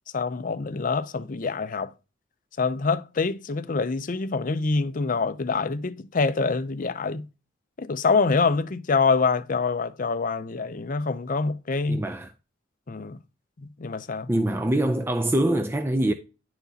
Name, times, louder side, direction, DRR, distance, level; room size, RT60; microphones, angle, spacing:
voice 1, 0.1-1.9 2.6-7.3 7.8-12.0 12.9-13.2 13.6-14.3, left 4 dB, 40° left, 0.5 m, -25 dB
voice 2, 11.9-12.3 14.3-16.1, right 1 dB, 10° right, 0.4 m, -24 dB
10.5 x 5.9 x 2.8 m
head